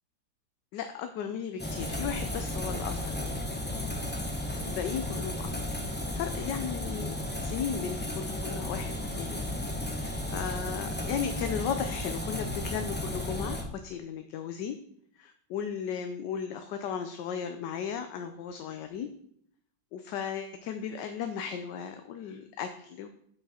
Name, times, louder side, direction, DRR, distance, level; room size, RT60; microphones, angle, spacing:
voice 1, 0.7-3.3 4.6-5.5 6.1-9.5 9.9-14.8 15.2-19.1 19.9-23.1, left 7 dB, 75° left, 7 dB, 1.3 m, -36 dB
sound 1, 1.6-13.6, left 1 dB, 10° left, 0.6 m, -34 dB
8.7 x 5.9 x 4.2 m, 0.67 s
omnidirectional pair, 2.0 m